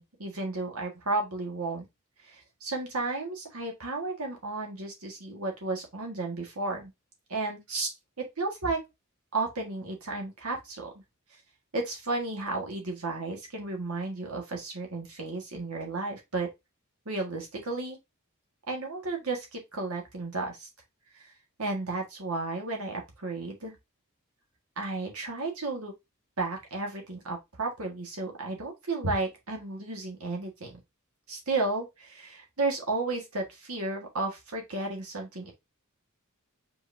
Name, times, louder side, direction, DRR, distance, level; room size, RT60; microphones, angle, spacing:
voice 1, 0.0-1.9 2.2-6.9 7.3-8.8 9.3-10.9 11.7-16.5 17.1-18.0 18.7-20.7 21.1-21.3 21.6-23.7 24.8-25.9 26.4-30.8 31.3-35.5, right 3 dB, 85° right, 1.6 m, -33 dB
4.9 x 4.0 x 2.7 m
head